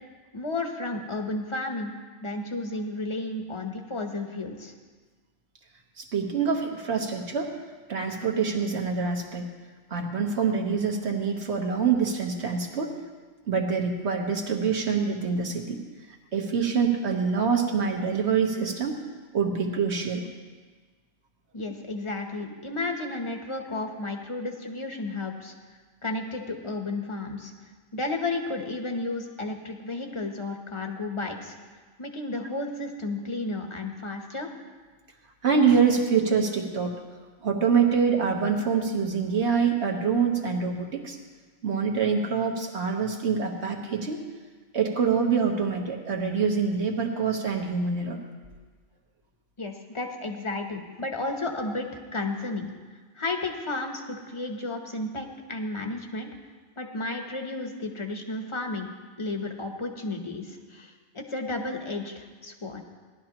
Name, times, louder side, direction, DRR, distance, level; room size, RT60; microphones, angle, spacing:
voice 1, 0.3-1.9 2.2-4.7 21.5-25.5 26.0-27.5 27.9-31.6 32.0-34.5 49.6-52.7 53.2-56.3 56.8-58.9 59.2-62.8, left 2 dB, 25° left, 4 dB, 0.9 m, -32 dB
voice 2, 6.0-7.5 7.9-9.5 9.9-12.9 13.5-15.8 16.1-19.0 19.3-20.2 35.4-36.9 37.4-41.2 41.6-44.2 44.7-48.2, right 5 dB, 65° right, 1 dB, 1.5 m, -25 dB
17.5 x 11.5 x 3.0 m, 1.4 s
omnidirectional pair, 1.2 m